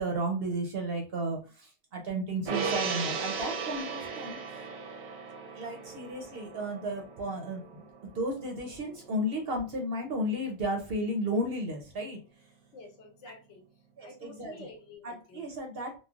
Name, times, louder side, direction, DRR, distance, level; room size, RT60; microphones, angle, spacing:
voice 1, 0.0-4.4 5.6-12.2 14.0-14.5 15.0-16.0, right 1 dB, 60° right, 2 dB, 0.7 m, -33 dB
Gong, 2.5-9.1 9.4-9.6, right 5 dB, 85° right, 1.0 m, -37 dB
voice 2, 12.7-13.7 14.0-15.5, left 3 dB, 65° left, 3 dB, 1.1 m, -49 dB
3.1 x 2.1 x 2.3 m, 0.34 s
omnidirectional pair, 1.4 m